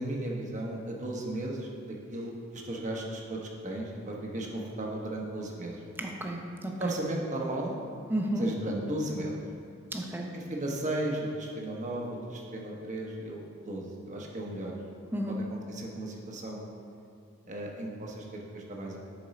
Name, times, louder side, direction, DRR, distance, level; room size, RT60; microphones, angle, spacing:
voice 1, 0.0-5.8 6.8-7.8 8.4-9.3 10.3-14.7 15.3-16.6 17.5-19.0, right 1 dB, 35° right, -1 dB, 1.1 m, -35 dB
voice 2, 6.0-6.9 8.1-8.5 9.9-10.3 15.1-15.5, right 1 dB, 10° right, 1 dB, 0.7 m, -32 dB
10.5 x 4.6 x 4.1 m, 2.6 s
head